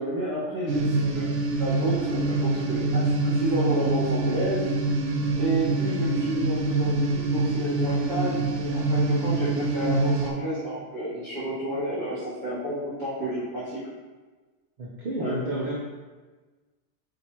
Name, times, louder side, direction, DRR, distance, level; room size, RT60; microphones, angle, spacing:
voice 1, 0.0-4.6 5.3-13.8 15.2-15.3, right 1 dB, 20° right, -13 dB, 1.5 m, -30 dB
sound 1, 0.7-10.3, right 2 dB, 85° right, 0.9 m, -25 dB
voice 2, 5.7-6.0 14.8-15.8, right 1 dB, 50° right, -4 dB, 0.6 m, -31 dB
6.1 x 2.6 x 2.8 m, 1.3 s
omnidirectional pair, 1.2 m